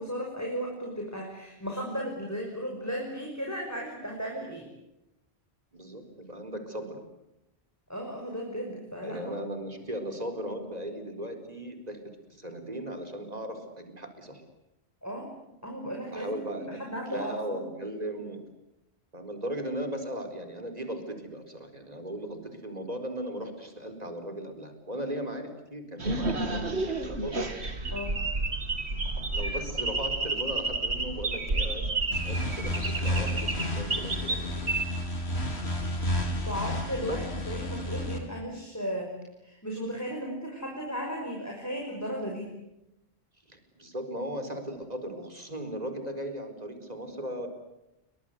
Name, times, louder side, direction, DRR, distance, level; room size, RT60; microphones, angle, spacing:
voice 1, 0.0-4.7 7.9-9.3 15.0-15.3 15.6-17.7 27.9-28.1 36.4-39.1 39.4-42.5, equal, 15° left, 0 dB, 5.8 m, -35 dB
voice 2, 5.7-7.0 9.0-12.0 12.3-14.4 16.1-18.4 19.1-27.4 29.3-34.7 37.1-37.2 43.5-47.5, right 1 dB, 40° right, 7 dB, 4.7 m, -37 dB
sound 1, 26.0-34.8, right 2 dB, 85° right, 2.9 m, -31 dB
sound 2, 32.1-38.2, left 1 dB, 75° left, 4.8 m, -31 dB
29.0 x 24.0 x 8.2 m, 0.88 s
omnidirectional pair, 1.1 m